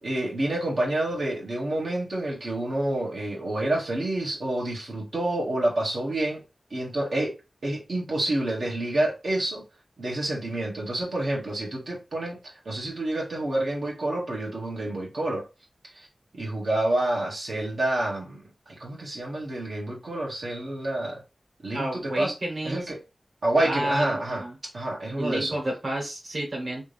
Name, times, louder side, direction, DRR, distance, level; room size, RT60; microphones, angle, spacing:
voice 1, 0.0-6.4 6.7-7.3 7.6-9.6 10.0-15.4 15.9-16.1 16.4-18.4 18.8-21.2 21.6-22.3 22.6-23.0 23.4-24.4 24.7-25.6, right 1 dB, 85° right, 1.4 m, -28 dB
voice 2, 21.7-22.8 23.6-24.5 25.2-26.8, right 1 dB, 65° right, 1.8 m, -30 dB
3.4 x 2.8 x 3.3 m
wide cardioid pair, 70°, 0 cm